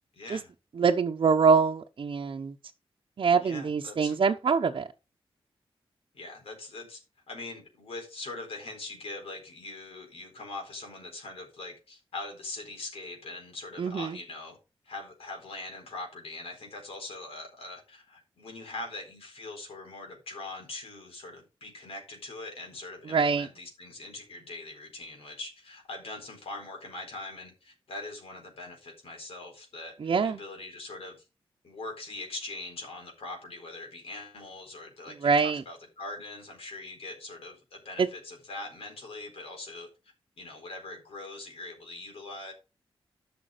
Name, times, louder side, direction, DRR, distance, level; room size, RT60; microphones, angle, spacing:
voice 1, 0.1-0.5 3.4-4.2 6.1-7.0 7.3-14.6 14.8-31.2 31.6-39.9 40.4-42.5, left 2 dB, 90° left, 4.1 m, -42 dB
voice 2, 0.8-2.5 3.2-4.9 13.8-14.2 23.1-23.5 30.0-30.4 35.2-35.6 38.0-38.1, right 5 dB, 60° right, 0.8 m, -24 dB
11.5 x 6.1 x 5.1 m
cardioid pair, 80°, 10 cm